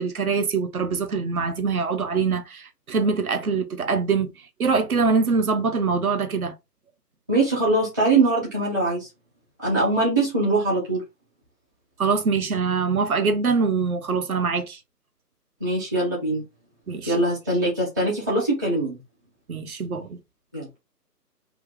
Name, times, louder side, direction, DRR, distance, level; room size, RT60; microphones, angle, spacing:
voice 1, 0.0-4.3 4.6-6.5 12.0-14.8 16.9-17.1 19.5-20.2, right 5 dB, 60° right, 0.7 m, -24 dB
voice 2, 7.3-9.1 9.6-11.0 15.6-16.4 17.1-19.0 20.5-20.8, right 2 dB, 10° right, 0.7 m, -22 dB
2.7 x 2.4 x 3.5 m
figure-of-eight pair, 145°, 49 cm